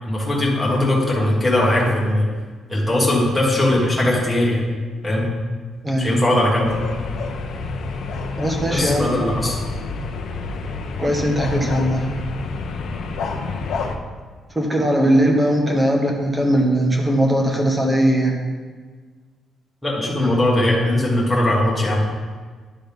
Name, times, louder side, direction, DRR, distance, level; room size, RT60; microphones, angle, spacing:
voice 1, 0.0-2.2 2.7-4.6 5.0-5.3 6.0-6.8 8.7-9.5 19.8-22.0, left 1 dB, 5° left, -6 dB, 1.6 m, -19 dB
voice 2, 5.8-6.2 8.4-9.3 11.0-12.1 14.5-18.4, right 1 dB, 10° right, 1 dB, 1.1 m, -19 dB
sound 1, 6.6-14.0, left 4 dB, 70° left, 0.8 m, -28 dB
10.5 x 3.9 x 5.3 m, 1.5 s
cardioid pair, 165°, 0 cm